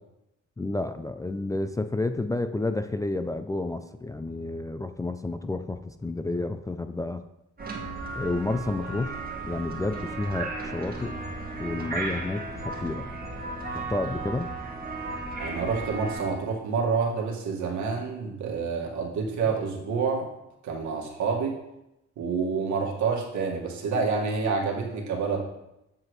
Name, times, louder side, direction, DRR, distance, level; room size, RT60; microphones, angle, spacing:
voice 1, 0.6-7.2 8.2-11.2 11.6-13.1 13.7-14.5, left 2 dB, 10° left, 8 dB, 0.3 m, -30 dB
sound 1, 7.6-16.3, right 3 dB, 30° right, 1.8 m, -35 dB
voice 2, 15.4-20.3 20.6-21.5 22.2-25.4, right 5 dB, 70° right, 0 dB, 1.9 m, -28 dB
7.8 x 7.6 x 3.2 m, 0.89 s
cardioid pair, 90°, 30 cm